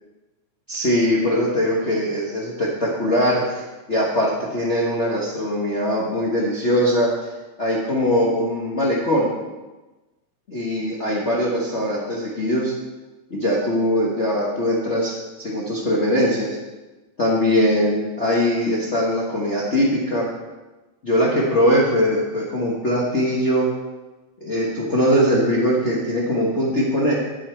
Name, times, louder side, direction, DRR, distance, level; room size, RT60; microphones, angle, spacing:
voice 1, 0.7-3.6 3.9-7.1 7.6-9.3 10.5-12.7 13.3-16.6 17.2-20.2 21.0-23.7 24.4-27.1, equal, 60° left, -5 dB, 0.7 m, -21 dB
8.4 x 8.1 x 4.4 m, 1.1 s
omnidirectional pair, 3.3 m